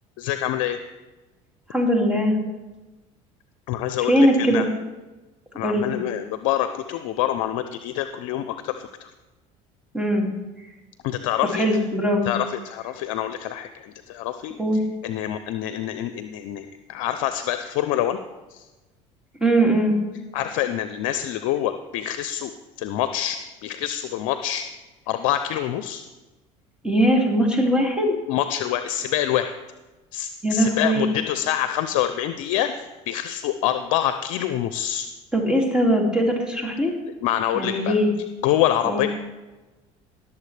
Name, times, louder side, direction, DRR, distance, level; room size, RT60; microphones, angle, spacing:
voice 1, 0.2-0.8 3.7-4.6 5.6-9.1 11.0-11.6 12.3-13.7 14.1-14.5 15.0-18.2 18.5-18.6 20.3-22.5 22.8-24.6 25.1-26.0 28.3-29.5 30.1-35.1 37.2-38.0 38.4-39.1, left 12 dB, 75° left, 10 dB, 0.5 m, -26 dB
voice 2, 1.7-2.4 4.1-4.7 5.6-5.9 9.9-10.3 11.5-12.3 14.6-14.8 19.4-20.0 26.8-28.1 30.4-31.0 35.3-36.9 37.5-38.1 38.8-39.1, equal, 5° right, 0 dB, 2.5 m, -20 dB
17.5 x 7.1 x 3.3 m, 1.1 s
hypercardioid pair, 80°, 17 cm